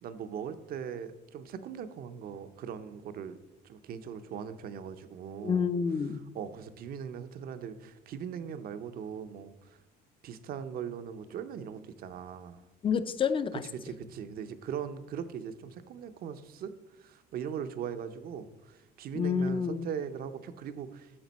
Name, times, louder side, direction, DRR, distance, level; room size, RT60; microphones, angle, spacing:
voice 1, 0.0-3.4 3.6-5.7 6.0-9.8 10.2-12.6 13.5-21.1, right 8 dB, 65° right, 10 dB, 0.6 m, -40 dB
voice 2, 5.4-6.2 12.8-13.5 19.2-19.9, left 6 dB, 30° left, 13 dB, 0.5 m, -28 dB
8.8 x 6.0 x 4.1 m, 1.1 s
cardioid pair, 110°, 17 cm